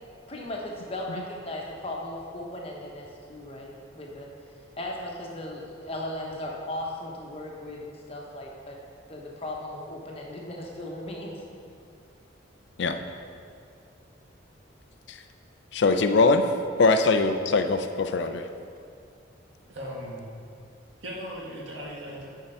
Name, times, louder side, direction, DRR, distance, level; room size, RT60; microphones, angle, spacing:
voice 1, 0.3-4.3 4.8-8.8 9.1-11.4, left 1 dB, 30° left, -1 dB, 1.0 m, -37 dB
voice 2, 15.7-16.5 16.8-18.5, left 3 dB, 60° left, 8 dB, 0.5 m, -22 dB
voice 3, 19.7-20.3 21.0-22.3, equal, 70° right, -3 dB, 1.7 m, -38 dB
9.5 x 4.6 x 5.6 m, 2.4 s
head